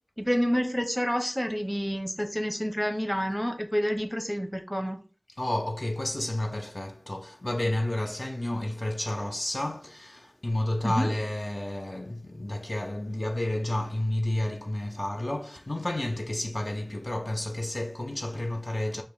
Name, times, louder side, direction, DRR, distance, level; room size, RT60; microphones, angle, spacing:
voice 1, 0.2-5.0 10.8-11.1, equal, 5° left, 0.8 m, -28 dB
voice 2, 5.4-19.0, left 1 dB, 40° left, 0.5 m, -31 dB
5.2 x 2.2 x 4.6 m
wide cardioid pair, 50°, 0 cm